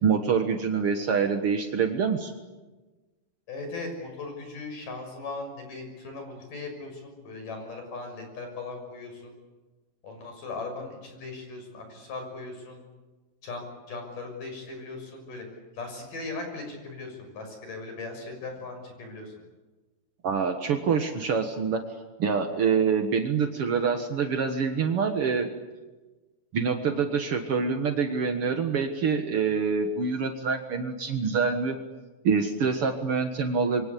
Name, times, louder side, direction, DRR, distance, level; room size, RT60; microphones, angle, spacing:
voice 1, 0.0-2.3 20.2-21.8 22.2-25.5 26.5-31.8 32.2-33.8, right 5 dB, 75° right, 5 dB, 1.3 m, -26 dB
voice 2, 3.5-9.4 10.0-12.8 13.4-15.5 15.7-19.3, left 3 dB, 50° left, 5 dB, 7.9 m, -38 dB
27.0 x 24.0 x 8.5 m, 1.2 s
omnidirectional pair, 5.0 m